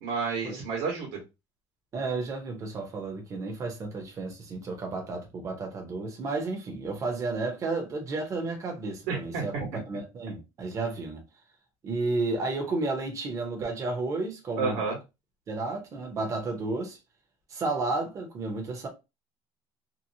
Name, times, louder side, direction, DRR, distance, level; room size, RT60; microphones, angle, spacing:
voice 1, 0.0-1.2 9.1-9.4 9.7-9.8 14.6-15.0, right 5 dB, 75° right, 1.2 m, -30 dB
voice 2, 1.9-9.5 9.9-11.2 11.8-14.8 15.5-17.0 17.5-18.9, right 3 dB, 30° right, 0.7 m, -32 dB
2.8 x 2.0 x 2.6 m
cardioid pair, 165°, 11 cm